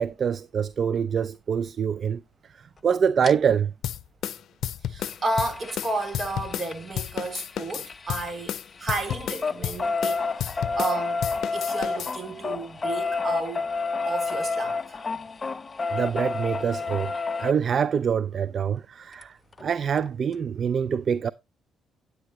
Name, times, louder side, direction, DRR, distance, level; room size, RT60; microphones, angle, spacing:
voice 1, 0.0-2.2 2.8-3.7 15.9-17.1 17.4-21.3, right 7 dB, 50° right, 0.4 m, -25 dB
sound 1, 3.2-3.3 5.0-8.5 8.8-17.5 19.2-19.3 19.6-19.7 20.0-20.1, left 4 dB, 30° left, 0.5 m, -30 dB
sound 2, 3.8-6.7 7.0-11.0 11.2-12.1, left 10 dB, 70° left, 0.6 m, -31 dB
voice 2, 4.9-11.2 11.5-13.7 14.0-15.0, right 2 dB, 35° right, 3.7 m, -32 dB
9.9 x 9.2 x 3.1 m
cardioid pair, 90°, 0 cm